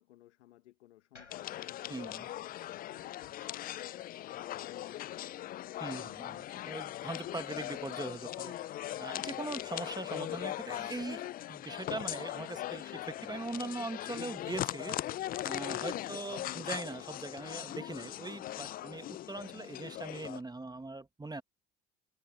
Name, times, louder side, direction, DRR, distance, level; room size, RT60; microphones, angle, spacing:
voice 1, 0.0-5.5 9.6-9.8, left 15 dB, 75° left, 1.5 m, -59 dB
sound 1, 1.1-5.3, left 4 dB, 90° left, 6.5 m, -64 dB
sound 2, 1.3-20.4, left 14 dB, 25° left, 0.3 m, -40 dB
voice 2, 1.9-2.2 5.8-15.0 15.4-21.4, right 2 dB, 10° right, 1.5 m, -41 dB
figure-of-eight pair, 65°, 35 cm